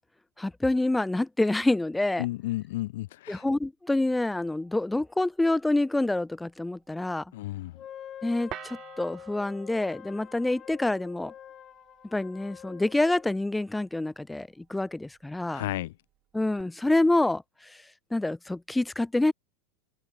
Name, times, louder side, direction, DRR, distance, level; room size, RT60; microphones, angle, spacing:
voice 1, 0.4-2.3 3.3-7.2 8.2-11.3 12.1-15.6 16.3-17.8 18.1-19.3, left 2 dB, 5° left, 0.3 m, -27 dB
voice 2, 2.2-3.4 7.3-7.8 15.5-15.9, left 17 dB, 70° left, 0.5 m, -33 dB
sound 1, 4.4-16.6, right 13 dB, 35° right, 2.7 m, -52 dB
Wind instrument woodwind instrument, 7.7-13.4, left 10 dB, 30° left, 4.1 m, -46 dB
supercardioid pair, 130°, 0 cm